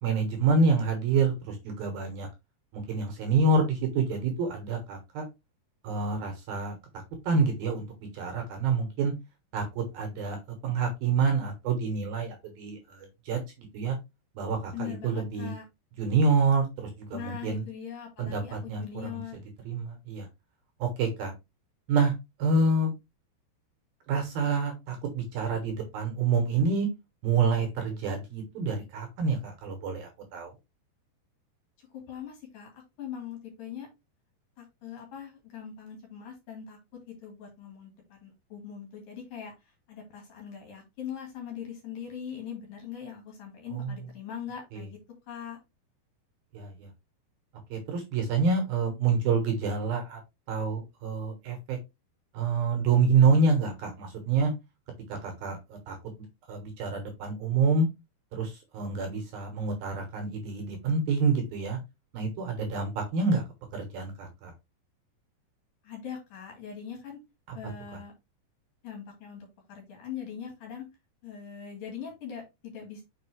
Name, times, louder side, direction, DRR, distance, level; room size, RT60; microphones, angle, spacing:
voice 1, 0.0-2.3 2.7-5.3 5.8-6.8 7.2-7.9 8.1-9.1 9.5-14.0 14.3-15.5 16.0-17.6 18.2-18.8 19.1-20.3 20.8-21.3 21.9-22.1 22.4-22.9 24.1-26.9 27.2-30.5 43.7-43.9 44.7-44.8 46.5-46.9 47.7-50.2 50.5-51.8 52.3-54.5 55.2-57.9 58.3-61.8 62.1-63.4 63.7-64.5, right 4 dB, 65° right, 4 dB, 2.8 m, -27 dB
voice 2, 14.7-15.6 17.1-19.4 31.8-33.9 34.6-36.8 37.2-39.5 39.9-45.0 45.3-45.6 65.8-67.2 67.5-68.1 68.8-70.9 71.2-73.0, left 8 dB, 55° left, 2 dB, 3.2 m, -41 dB
6.6 x 5.3 x 3.3 m, 0.23 s
omnidirectional pair, 5.3 m